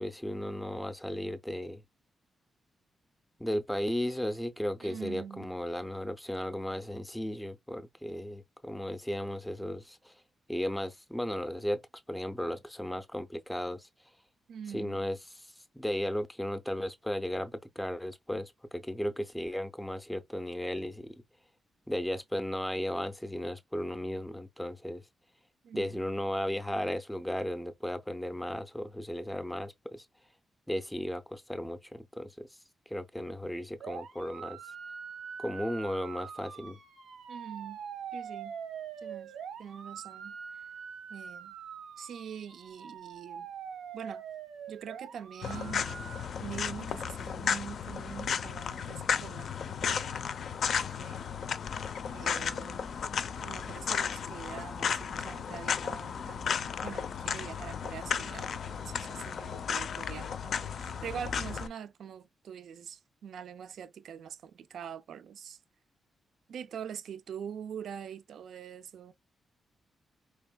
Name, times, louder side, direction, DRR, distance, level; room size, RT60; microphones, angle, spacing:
voice 1, 0.0-1.8 3.4-10.1 10.5-11.8 12.1-13.9 14.7-15.2 15.7-21.1 21.9-25.0 25.7-30.1 30.7-32.5 32.9-34.6 35.4-36.8, equal, 5° left, 0.5 m, -35 dB
voice 2, 4.8-5.6 14.5-15.0 25.6-26.2 37.3-37.8 38.1-38.6 39.0-39.3 39.6-40.6 41.1-41.6 42.0-43.5 43.9-44.2 44.7-46.1 46.4-50.2 50.6-51.3 52.1-52.9 53.5-56.5 56.8-65.6 66.5-69.1, right 8 dB, 70° right, 0.5 m, -44 dB
sound 1, 33.8-46.3, right 7 dB, 90° right, 1.0 m, -44 dB
sound 2, 45.4-61.7, left 7 dB, 55° left, 0.4 m, -34 dB
4.6 x 3.4 x 2.2 m
wide cardioid pair, 165°, 0 cm